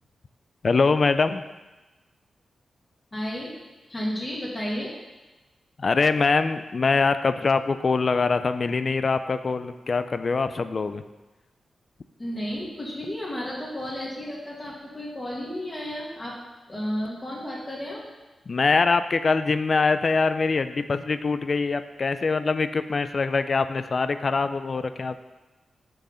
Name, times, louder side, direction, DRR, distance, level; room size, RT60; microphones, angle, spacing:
voice 1, 0.6-1.4 5.8-11.0 18.5-25.2, left 4 dB, 45° left, 11 dB, 0.4 m, -23 dB
voice 2, 3.1-3.6 3.9-4.9 12.2-16.4 16.7-18.0, equal, 25° left, -5 dB, 2.0 m, -32 dB
6.5 x 6.3 x 5.5 m, 1.1 s
wide cardioid pair, 100°, 0 cm